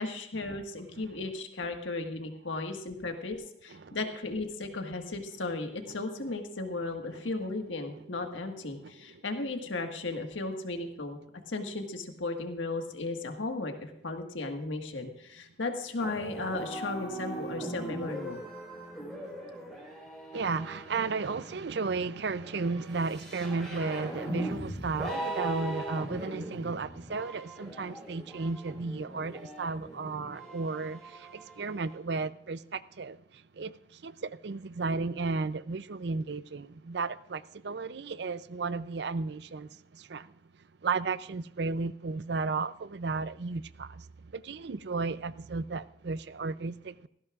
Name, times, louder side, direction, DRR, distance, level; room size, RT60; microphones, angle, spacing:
voice 1, 0.0-11.2 11.5-13.7 14.0-18.4, left 2 dB, 90° left, 1.7 m, -35 dB
voice 2, 6.7-7.3 8.8-9.2 20.3-40.3 40.8-47.1, right 4 dB, 60° right, 0.5 m, -34 dB
sound 1, 16.0-32.0, right 1 dB, ahead, 4.4 m, -40 dB
18.5 x 15.0 x 2.5 m
head